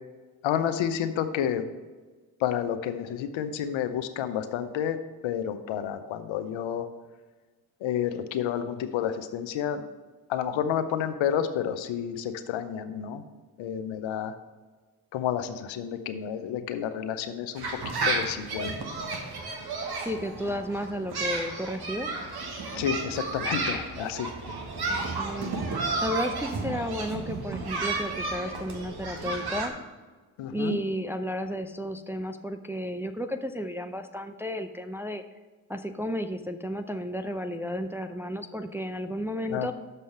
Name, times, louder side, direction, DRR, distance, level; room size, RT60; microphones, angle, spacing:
voice 1, 0.4-1.7 2.4-5.0 5.2-6.9 7.8-9.8 10.3-13.2 13.6-14.3 15.1-17.7 18.0-18.7 22.7-24.3 30.4-30.8 39.5-39.7, left 9 dB, 65° left, 10 dB, 0.8 m, -30 dB
sound 1, 17.6-29.7, right 3 dB, 50° right, 1.6 m, -32 dB
voice 2, 20.0-22.1 24.9-25.5 26.0-29.7 30.5-35.2 35.7-39.7, equal, 5° right, 6 dB, 0.5 m, -33 dB
6.5 x 5.5 x 6.5 m, 1.3 s
hypercardioid pair, 50°, 49 cm